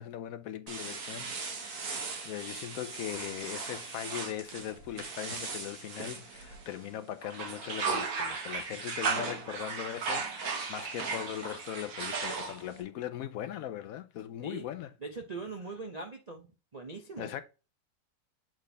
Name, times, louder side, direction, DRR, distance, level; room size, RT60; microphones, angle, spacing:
voice 1, 0.0-1.3 1.6-1.7 2.2-14.9 17.2-17.4, left 11 dB, 75° left, 0.8 m, -39 dB
sound 1, 0.7-6.8 7.2-12.8, right 4 dB, 55° right, 1.7 m, -37 dB
voice 2, 15.0-16.5 16.7-17.3, right 3 dB, 75° right, 0.3 m, -41 dB
7.5 x 4.1 x 3.3 m
omnidirectional pair, 2.0 m